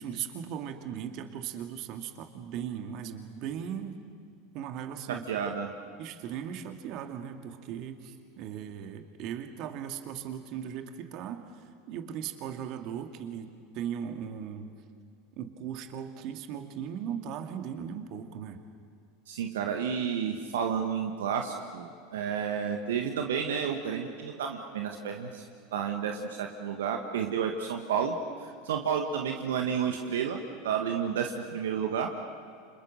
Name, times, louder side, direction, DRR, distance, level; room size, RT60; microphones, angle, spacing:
voice 1, 0.0-4.0 4.5-5.2 6.0-14.7 15.4-18.6, right 8 dB, 50° right, 6 dB, 2.4 m, -38 dB
voice 2, 5.1-5.7 19.3-25.4 25.7-28.2 28.4-30.4 30.6-32.1, right 7 dB, 70° right, 4 dB, 1.8 m, -31 dB
30.0 x 27.0 x 6.7 m, 2.3 s
hypercardioid pair, 80°, 0 cm